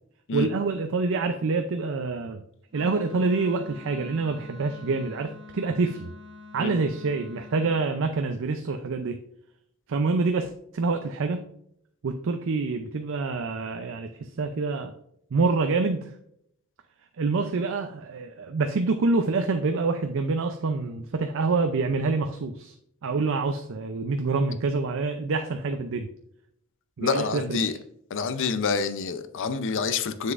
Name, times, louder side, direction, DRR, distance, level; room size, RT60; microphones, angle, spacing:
voice 1, 0.3-2.4 2.7-6.1 6.5-9.2 9.9-11.4 12.0-14.9 15.3-16.1 17.2-22.7 23.0-26.1 27.0-27.8, right 3 dB, 60° right, 6 dB, 0.5 m, -26 dB
Wind instrument woodwind instrument, 2.7-7.9, left 3 dB, 25° right, 1.5 m, -46 dB
voice 2, 27.0-27.7 28.1-30.3, left 5 dB, 60° left, 11 dB, 0.5 m, -27 dB
7.2 x 6.5 x 2.5 m, 0.72 s
head